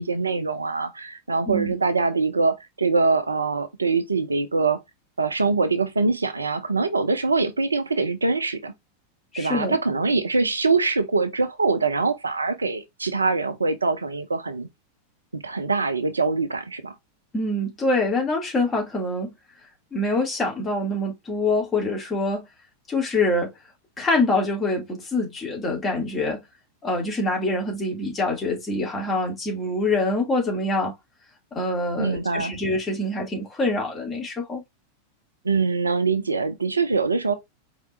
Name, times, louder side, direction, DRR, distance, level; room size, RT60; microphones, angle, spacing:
voice 1, 0.0-4.8 5.2-8.7 9.4-14.7 15.3-16.9 32.0-32.5 35.4-37.3, right 4 dB, 80° right, 0.7 m, -23 dB
voice 2, 9.3-9.8 17.3-19.3 19.9-22.5 22.9-23.5 24.0-26.4 26.8-30.9 31.5-34.6, left 2 dB, 20° left, 2.4 m, -25 dB
4.8 x 3.5 x 3.1 m
figure-of-eight pair, 90°, 0 cm